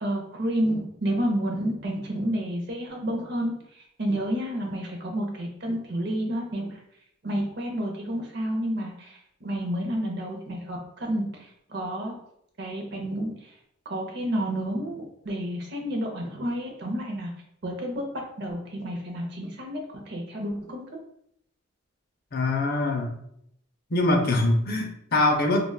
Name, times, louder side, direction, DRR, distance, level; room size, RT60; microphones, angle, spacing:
voice 1, 0.0-3.5 4.0-6.8 7.2-12.1 12.6-13.3 13.9-17.3 17.6-18.0 18.4-19.8 20.1-20.8, equal, 55° right, 1 dB, 0.6 m, -30 dB
voice 2, 22.3-23.2 23.9-25.7, left 2 dB, 45° left, 2 dB, 0.5 m, -23 dB
3.5 x 2.2 x 2.2 m, 0.74 s
head